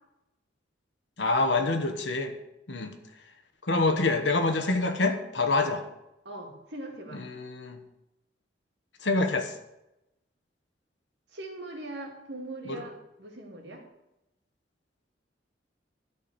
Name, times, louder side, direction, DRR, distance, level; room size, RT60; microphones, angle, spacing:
voice 1, 1.2-2.3 2.7-3.0 3.6-5.8 7.1-7.8 9.0-9.5 12.7-12.8, left 3 dB, 75° left, 6 dB, 1.2 m, -26 dB
voice 2, 6.2-7.2 11.3-13.8, right 2 dB, 70° right, 0 dB, 2.3 m, -41 dB
12.5 x 4.4 x 6.7 m, 0.91 s
head